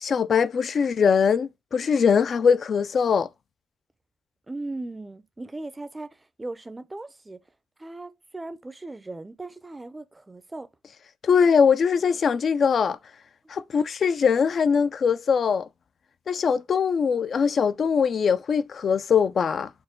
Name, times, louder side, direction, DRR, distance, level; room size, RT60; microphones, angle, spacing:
voice 1, 0.0-3.3 11.2-13.0 13.5-15.7 16.3-19.7, left 6 dB, 50° left, 0.3 m, -21 dB
voice 2, 4.5-7.4 7.8-10.7, right 2 dB, 15° right, 0.5 m, -38 dB
4.5 x 2.1 x 3.6 m
cardioid pair, 90°, 0 cm